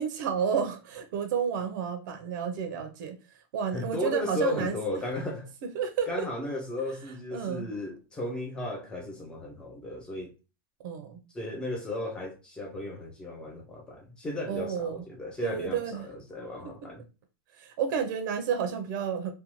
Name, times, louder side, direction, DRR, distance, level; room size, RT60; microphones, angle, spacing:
voice 1, 0.0-4.8 5.7-6.3 7.3-7.7 10.8-11.2 14.5-15.0 15.4-16.0 17.5-19.3, right 7 dB, 55° right, 0.5 m, -31 dB
voice 2, 3.7-5.5 6.1-10.3 11.3-17.1, left 1 dB, 5° left, 0.4 m, -35 dB
2.6 x 2.2 x 2.9 m
supercardioid pair, 175°, 13 cm